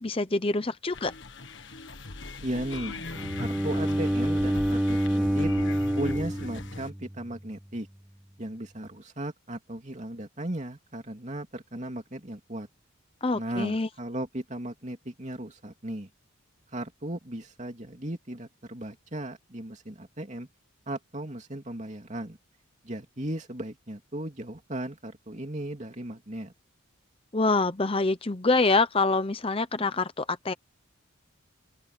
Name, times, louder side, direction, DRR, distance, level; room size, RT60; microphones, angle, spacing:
voice 1, 0.0-1.1 13.2-13.9 27.3-30.5, left 3 dB, 25° left, 0.7 m, -25 dB
sound 1, 0.9-6.9, left 3 dB, 55° left, 1.6 m, -40 dB
voice 2, 2.4-3.1 3.4-5.5 5.9-7.9 8.4-12.7 13.3-16.1 16.7-20.5 20.9-22.4 22.8-26.5, right 1 dB, 35° right, 2.9 m, -36 dB
Bowed string instrument, 3.1-7.2, equal, 5° right, 0.4 m, -27 dB
open air
head